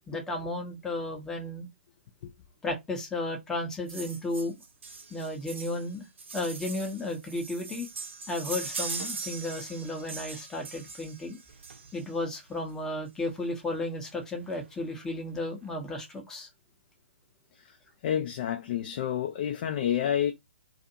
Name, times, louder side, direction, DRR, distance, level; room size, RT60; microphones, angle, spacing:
voice 1, 0.1-1.7 2.6-4.5 5.1-6.1 6.3-7.9 8.3-11.4 11.9-16.5, left 2 dB, 10° left, 0.7 m, -33 dB
sound 1, 3.9-12.2 13.3-13.4 13.7-13.8 14.0-14.2 14.5-15.1 15.6-15.7, right 4 dB, 65° right, 0.8 m, -40 dB
voice 2, 18.0-20.3, left 10 dB, 40° left, 0.4 m, -29 dB
2.5 x 2.5 x 2.6 m
figure-of-eight pair, 130°, 7 cm